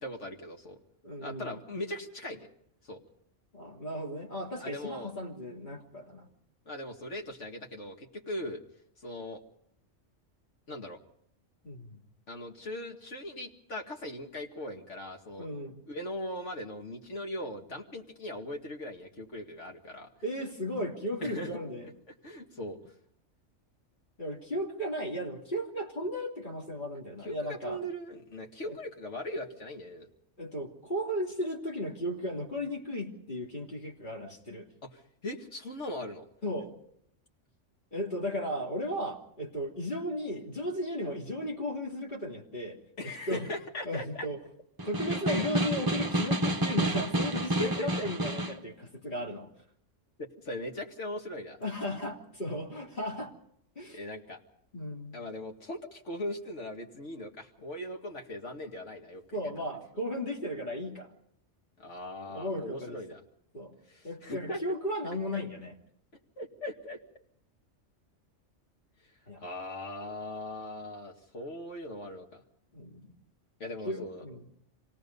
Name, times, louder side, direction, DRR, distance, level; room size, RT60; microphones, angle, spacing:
voice 1, 0.0-0.8 1.2-2.5 2.8-3.0 4.6-5.1 6.7-8.6 9.0-9.4 10.7-11.0 12.3-15.5 15.9-20.1 21.2-21.5 22.2-22.9 27.2-30.1 34.8-36.3 43.0-44.3 45.0-45.4 47.6-48.1 50.2-51.6 53.9-54.4 55.1-59.5 61.8-63.2 63.9-64.6 65.3-65.4 66.4-67.0 69.4-72.4 73.6-74.2, left 1 dB, 70° left, 2 dB, 2.5 m, -39 dB
voice 2, 1.0-1.6 3.5-6.3 11.6-12.0 15.4-15.8 20.2-21.9 24.2-27.8 28.6-28.7 30.4-34.7 36.4-36.7 37.9-42.8 43.0-43.5 43.8-44.4 44.8-49.5 51.6-53.3 53.7-54.0 54.7-55.2 59.3-61.1 62.3-63.0 63.5-63.8 64.0-65.7 69.3-69.4 72.7-73.1 73.8-74.4, equal, 40° left, -2 dB, 3.4 m, -35 dB
Snare drum, 44.8-48.6, right 1 dB, 20° right, 0.7 m, -29 dB
27.0 x 18.0 x 5.5 m, 0.70 s
omnidirectional pair, 1.3 m